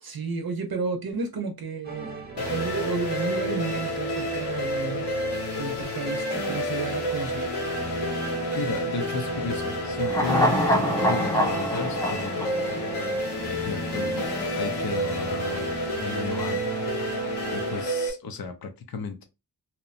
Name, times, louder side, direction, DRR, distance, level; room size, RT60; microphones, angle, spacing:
voice 1, 0.0-2.1 2.4-5.1 5.3-7.5, right 4 dB, 65° right, 0.6 m, -32 dB
sound 1, 1.8-17.8, right 3 dB, 25° right, 0.7 m, -38 dB
sound 2, 2.4-18.1, equal, 80° left, 0.9 m, -29 dB
voice 2, 8.5-10.6 11.0-12.5 13.5-16.6 17.1-19.3, left 5 dB, 60° left, 0.6 m, -34 dB
sound 3, 10.0-13.4 13.7-13.8, equal, 10° left, 0.4 m, -25 dB
2.8 x 2.0 x 2.4 m
wide cardioid pair, 85°, 40 cm